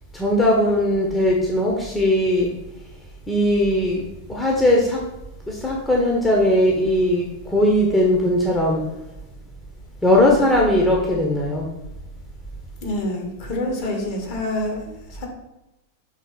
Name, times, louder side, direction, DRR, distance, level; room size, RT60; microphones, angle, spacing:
voice 1, 0.1-2.5 3.3-5.0 5.5-8.8 10.0-11.7, left 1 dB, 10° left, -2 dB, 1.2 m, -19 dB
voice 2, 12.8-15.3, left 1 dB, 45° left, 1 dB, 2.1 m, -27 dB
6.4 x 3.7 x 5.6 m, 0.94 s
figure-of-eight pair, 90°, 0 cm